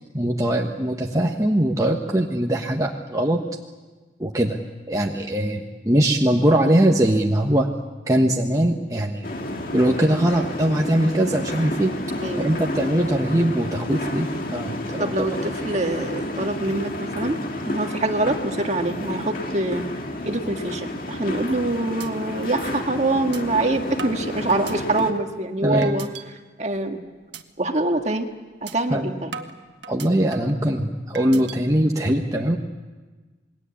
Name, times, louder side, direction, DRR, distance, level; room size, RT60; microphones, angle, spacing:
voice 1, 0.1-3.4 4.2-4.6 4.9-7.7 8.1-9.3 9.7-11.9 12.4-15.3 25.6-25.9 28.9-29.0 29.9-32.6, right 1 dB, 20° right, 0 dB, 1.3 m, -21 dB
sound 1, 9.2-25.1, left 1 dB, 50° left, 2.3 m, -31 dB
voice 2, 12.2-12.6 15.0-17.4 17.7-19.8 20.2-26.1 26.6-27.0 27.6-28.3 28.6-29.3, right 2 dB, 40° right, 4 dB, 1.8 m, -25 dB
sound 2, 22.0-22.1 22.5-22.6 23.3-23.4 24.0-25.3 25.8-26.2 26.7-26.9 27.3-27.4 27.8-28.0 28.7-28.8 29.3-30.6 31.1-31.6, right 6 dB, 75° right, 1.6 m, -38 dB
28.0 x 21.0 x 8.5 m, 1.3 s
head